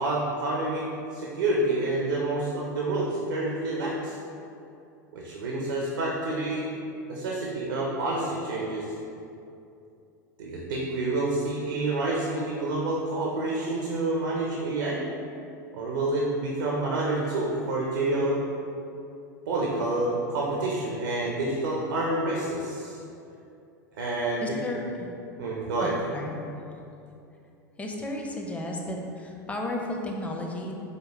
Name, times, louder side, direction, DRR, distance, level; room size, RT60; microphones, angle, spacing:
voice 1, 0.0-4.2 5.1-6.7 7.1-8.9 10.4-15.0 15.7-18.4 19.5-23.0 24.0-24.6 25.4-26.0, right 2 dB, 80° right, -3 dB, 0.5 m, -28 dB
voice 2, 24.4-24.8 25.8-26.3 27.8-30.7, left 1 dB, 15° left, 0 dB, 0.5 m, -33 dB
5.0 x 2.1 x 2.9 m, 2.6 s
hypercardioid pair, 90°, 10 cm